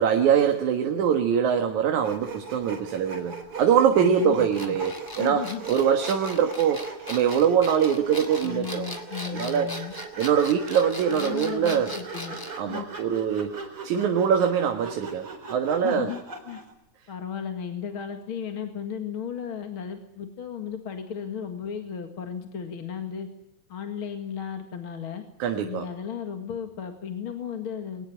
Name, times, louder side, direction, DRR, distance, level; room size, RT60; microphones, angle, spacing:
voice 1, 0.0-8.9 9.2-9.8 10.2-11.9 12.6-13.5 13.8-16.1 25.4-25.9, right 8 dB, 80° right, 5 dB, 2.9 m, -23 dB
Sawing, 2.0-16.7, right 4 dB, 50° right, 5.0 m, -40 dB
voice 2, 4.0-4.8 5.2-5.6 8.4-9.9 11.1-12.4 12.7-12.8 15.8-16.2 16.5-16.6 17.1-23.3 23.7-25.2 25.6-28.1, left 8 dB, 50° left, 5 dB, 2.5 m, -35 dB
sound 1, 4.5-12.6, left 1 dB, 5° left, 2.5 m, -39 dB
23.0 x 19.5 x 9.8 m, 0.76 s
omnidirectional pair, 3.4 m